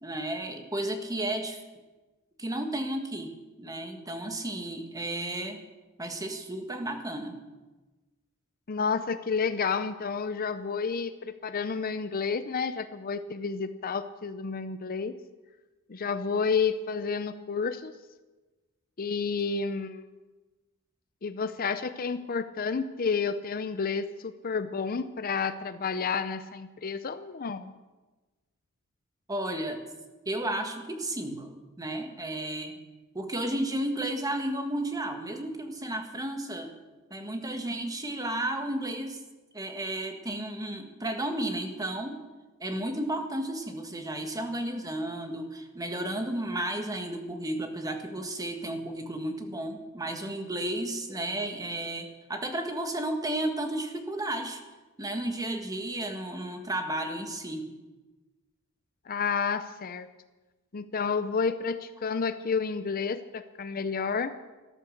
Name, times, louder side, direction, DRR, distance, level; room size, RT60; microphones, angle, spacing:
voice 1, 0.0-1.6 2.4-5.6 6.0-7.4 29.3-29.8 30.2-32.8 33.1-36.7 37.1-39.2 39.5-42.2 42.6-54.6 55.0-57.7, right 1 dB, 15° right, 5 dB, 1.6 m, -33 dB
voice 2, 8.7-15.1 15.9-17.9 19.0-20.0 21.2-27.7 59.1-60.1 60.7-64.3, left 5 dB, 40° left, 11 dB, 0.6 m, -30 dB
13.5 x 13.0 x 6.5 m, 1.2 s
head